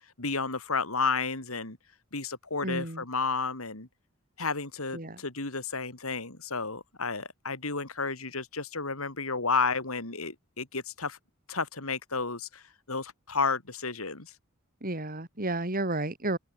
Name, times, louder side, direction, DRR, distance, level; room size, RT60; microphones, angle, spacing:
voice 1, 0.2-1.8 2.1-3.9 4.4-11.2 11.5-12.6 12.9-14.3, left 4 dB, 85° left, 4.0 m, -32 dB
voice 2, 2.6-3.0 4.9-5.2 14.8-16.4, right 2 dB, 40° right, 3.8 m, -32 dB
open air
head